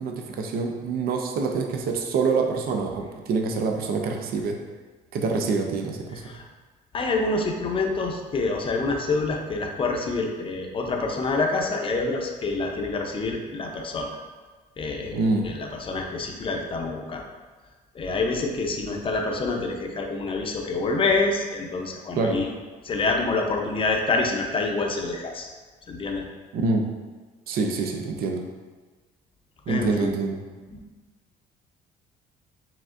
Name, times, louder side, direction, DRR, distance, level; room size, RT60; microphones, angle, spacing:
voice 1, 0.0-4.6 5.1-6.3 15.1-15.5 22.1-22.4 26.5-26.9 27.5-28.4 29.7-30.4, right 4 dB, 65° right, 3 dB, 0.5 m, -26 dB
voice 2, 6.9-14.1 14.8-17.2 17.9-22.5 22.8-25.5 25.9-26.2 29.7-30.1, left 3 dB, 30° left, 2 dB, 0.6 m, -27 dB
4.9 x 3.6 x 2.5 m, 1.4 s
cardioid pair, 110°, 17 cm